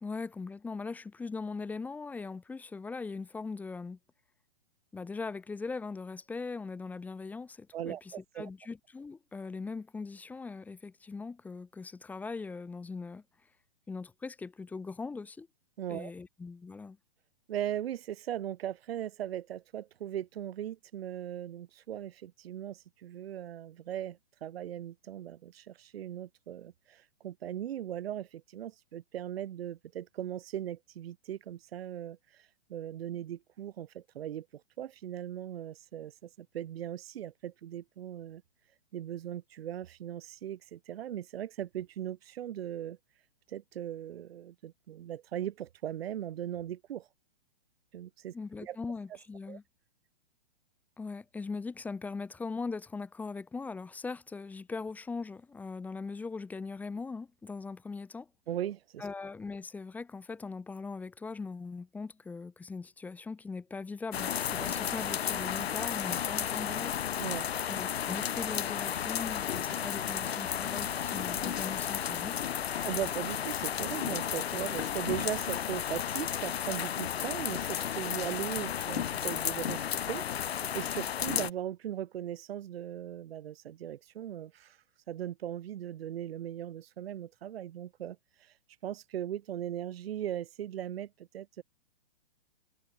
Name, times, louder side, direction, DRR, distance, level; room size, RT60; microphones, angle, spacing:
voice 1, 0.0-4.0 4.9-13.2 13.9-15.5 15.9-17.0 48.3-49.6 51.0-58.3 59.0-67.1 67.7-72.5, left 4 dB, 5° left, 0.9 m, -40 dB
voice 2, 7.7-8.5 15.8-16.1 17.5-38.4 38.9-43.0 43.5-47.1 47.9-48.3 48.6-48.8 49.5-49.6 58.5-59.1 66.2-66.3 67.2-67.5 72.8-88.6 88.8-91.6, right 11 dB, 75° right, 0.7 m, -39 dB
sound 1, 64.1-81.5, left 9 dB, 85° left, 0.9 m, -33 dB
hypercardioid pair, 150°, 30 cm